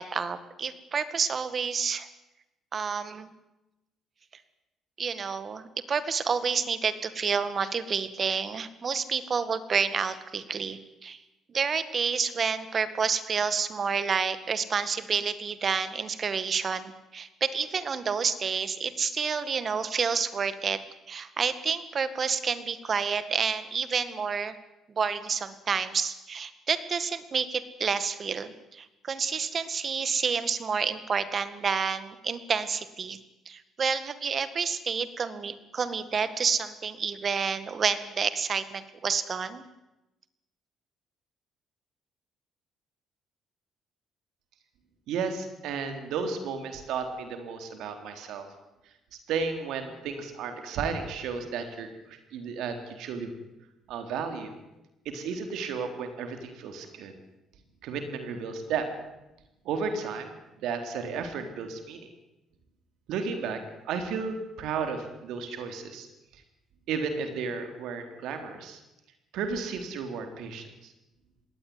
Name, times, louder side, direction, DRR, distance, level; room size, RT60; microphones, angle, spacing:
voice 1, 0.0-2.1 2.7-3.3 5.0-11.2 11.5-20.8 21.1-24.6 25.0-33.2 33.5-39.7, right 6 dB, 40° right, 13 dB, 1.9 m, -29 dB
voice 2, 45.1-48.5 49.3-53.3 53.9-54.5 55.1-57.1 57.8-58.9 59.6-60.3 60.6-62.1 63.1-66.1 66.3-66.4 66.9-68.8 69.3-70.9, right 5 dB, 80° right, 6 dB, 3.7 m, -33 dB
21.0 x 17.5 x 9.7 m, 0.97 s
cardioid pair, 110°, 0 cm